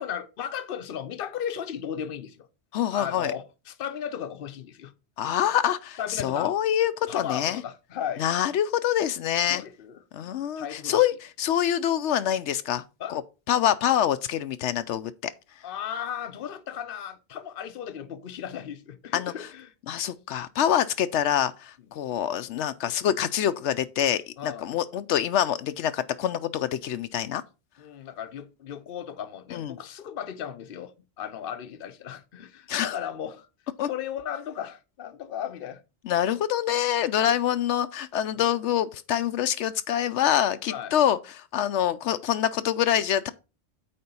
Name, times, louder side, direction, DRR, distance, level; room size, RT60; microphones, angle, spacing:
voice 1, 0.0-2.5 2.9-4.9 6.0-6.6 7.1-8.3 9.5-10.2 10.6-11.0 13.0-13.2 15.6-19.7 24.4-24.8 27.8-33.5 33.8-35.8 37.2-37.3 40.7-40.9, left 9 dB, 55° left, 0.9 m, -35 dB
voice 2, 2.7-3.3 5.2-7.6 8.2-9.6 10.1-12.8 13.1-13.2 13.5-15.3 19.1-19.5 19.9-27.4 29.5-29.8 32.7-33.0 33.8-33.9 36.0-43.3, left 10 dB, 85° left, 0.9 m, -25 dB
8.7 x 3.7 x 5.3 m
omnidirectional pair, 1.1 m